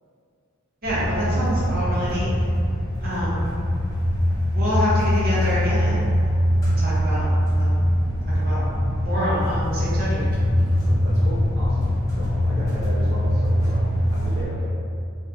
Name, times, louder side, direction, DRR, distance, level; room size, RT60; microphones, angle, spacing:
sound 1, 0.8-14.5, equal, 15° left, 0.4 m, -22 dB
voice 1, 0.8-2.5 3.0-3.5 4.5-6.4 6.6-7.3 7.5-7.8 8.3-8.6 9.0-10.2, equal, 45° right, -10 dB, 0.7 m, -26 dB
voice 2, 10.8-11.9 12.2-14.7, equal, 85° right, -7 dB, 0.6 m, -35 dB
2.5 x 2.1 x 2.4 m, 2.4 s
head